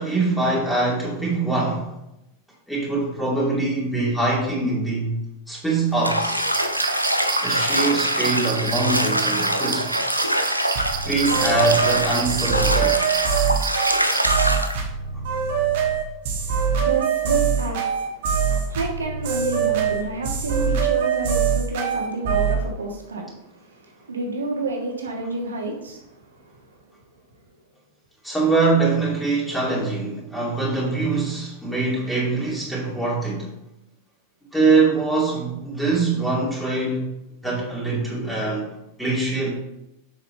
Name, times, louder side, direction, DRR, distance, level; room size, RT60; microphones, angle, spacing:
voice 1, 0.0-2.0 2.7-6.4 7.4-9.9 11.0-13.0 18.5-18.6 28.2-33.5 34.5-37.1 37.4-38.7 39.0-39.5, right 3 dB, 5° left, -6 dB, 2.5 m, -23 dB
Bathtub (filling or washing), 6.0-14.8, equal, 90° right, 0.6 m, -24 dB
sound 1, 6.4-14.3, right 10 dB, 30° right, 0.4 m, -32 dB
sound 2, 10.7-22.6, right 7 dB, 55° right, 1.3 m, -23 dB
voice 2, 16.5-26.7, right 3 dB, 70° right, 1 dB, 1.4 m, -30 dB
7.3 x 5.8 x 3.3 m, 0.87 s
figure-of-eight pair, 90°, 0 cm